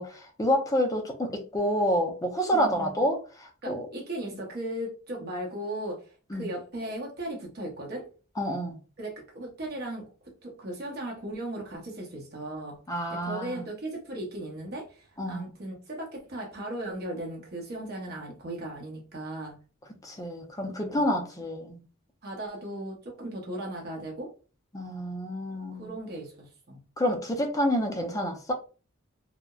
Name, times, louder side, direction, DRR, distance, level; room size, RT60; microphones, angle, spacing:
voice 1, 0.0-3.9 4.3-4.4 6.3-6.5 8.4-8.8 12.9-13.7 15.2-15.5 20.0-21.8 24.7-25.9 27.0-28.5, equal, 15° left, 0.4 m, -28 dB
voice 2, 2.5-3.1 3.6-6.1 6.3-8.1 9.0-10.0 10.4-12.8 13.1-19.6 20.8-21.0 22.2-24.3 25.5-26.8, right 1 dB, 50° right, 0.7 m, -37 dB
2.8 x 2.0 x 2.3 m
head